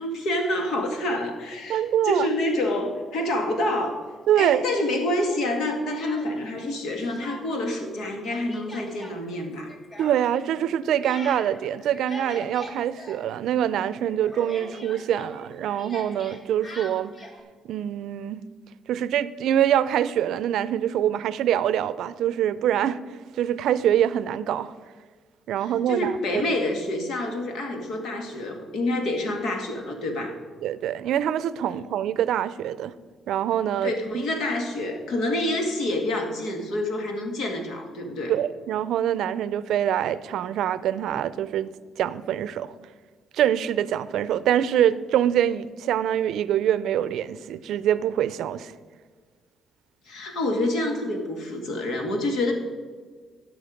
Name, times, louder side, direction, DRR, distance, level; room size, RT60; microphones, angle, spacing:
voice 1, 0.0-3.9 4.4-9.7 25.6-30.4 33.8-38.3 50.1-52.5, left 1 dB, 75° left, 2.0 m, -27 dB
voice 2, 1.7-2.3 4.3-4.6 10.0-17.1 17.6-18.4 18.9-23.0 23.4-24.7 25.5-26.4 30.6-32.9 33.3-33.9 38.3-41.7 42.0-42.7 43.3-48.7, right 10 dB, 80° right, 0.4 m, -24 dB
Speech, 5.3-6.6 6.9-7.8 8.0-13.7 14.0-17.4, equal, 30° left, 1.9 m, -42 dB
17.0 x 6.2 x 5.1 m
cardioid pair, 90°, 0 cm